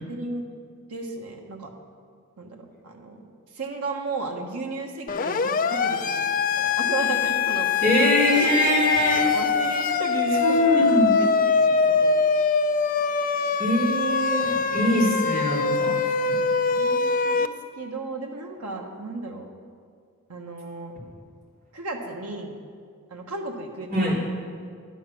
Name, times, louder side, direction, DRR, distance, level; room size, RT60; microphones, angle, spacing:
voice 1, 0.1-0.4 0.9-1.7 2.4-7.8 8.3-8.5 9.2-10.9 11.2-12.1 16.4-16.5 16.7-19.5 20.3-20.9 21.7-22.6 23.1-24.1, right 2 dB, 90° right, 2 dB, 1.3 m, -34 dB
Siren, 5.1-17.5, left 5 dB, 40° left, 0.5 m, -23 dB
voice 2, 7.8-9.3 10.4-11.1 13.6-15.9 23.9-24.2, left 1 dB, 40° right, -5 dB, 3.6 m, -22 dB
11.5 x 9.9 x 6.1 m, 2.1 s
head